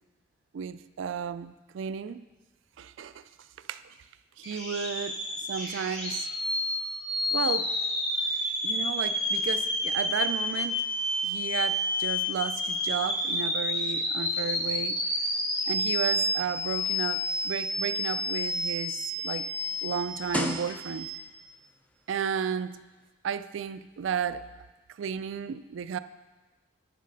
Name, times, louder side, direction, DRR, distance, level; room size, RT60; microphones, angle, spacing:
voice 1, 0.5-2.3 2.8-3.2 3.7-4.0 4.4-6.3 7.3-7.7 8.6-10.8 11.2-15.0 15.7-19.5 19.8-21.1 22.1-22.8 23.2-24.5 25.0-26.0, right 7 dB, 70° right, 13 dB, 0.3 m, -33 dB
sound 1, 4.4-21.2, left 1 dB, 40° left, 2.7 m, -30 dB
sound 2, 18.2-21.3 22.1-22.3, left 1 dB, 5° left, 0.4 m, -36 dB
9.0 x 6.5 x 5.3 m, 1.2 s
head